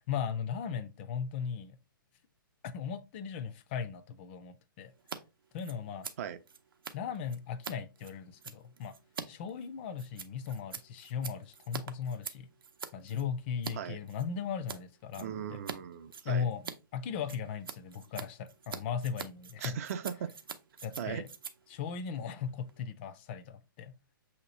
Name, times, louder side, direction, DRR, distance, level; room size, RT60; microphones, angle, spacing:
voice 1, 0.1-1.8 2.6-4.9 5.5-6.1 6.9-9.0 9.3-12.5 12.9-15.6 16.2-16.6 16.9-19.8 20.8-21.3 21.7-23.9, left 7 dB, 30° left, 0.4 m, -37 dB
Scissors, 5.0-5.2 5.4-13.7 14.1-14.8 15.1-15.8 16.0-22.8, right 6 dB, 80° right, 0.7 m, -45 dB
voice 2, 15.2-16.5 19.6-20.4 21.0-21.3, right 8 dB, 45° right, 0.4 m, -38 dB
6.1 x 2.8 x 3.0 m
hypercardioid pair, 145°, 12 cm